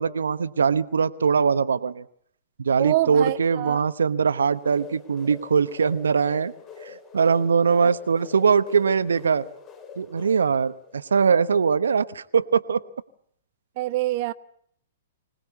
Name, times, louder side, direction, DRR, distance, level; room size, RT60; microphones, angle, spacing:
voice 1, 0.0-2.0 2.6-6.5 6.8-9.4 10.0-12.8, right 6 dB, 75° right, 0.9 m, -22 dB
voice 2, 2.8-3.8 13.8-14.3, right 16 dB, 45° right, 0.9 m, -25 dB
sound 1, 4.5-11.2, left 6 dB, 30° left, 5.1 m, -44 dB
25.0 x 18.5 x 8.2 m
figure-of-eight pair, 115°, 0 cm